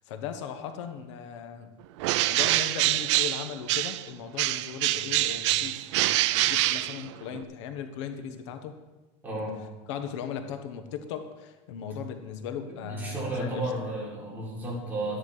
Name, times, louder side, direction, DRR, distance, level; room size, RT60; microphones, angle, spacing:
voice 1, 0.0-1.7 2.3-8.7 9.9-13.7, left 7 dB, 85° left, 7 dB, 1.3 m, -38 dB
Bird, 2.0-4.1 4.4-7.4, right 16 dB, 85° right, 0.5 m, -25 dB
voice 2, 9.2-9.6 12.9-15.2, right 1 dB, 10° right, -5 dB, 4.2 m, -33 dB
13.0 x 10.0 x 4.9 m, 1.2 s
cardioid pair, 165°, 15 cm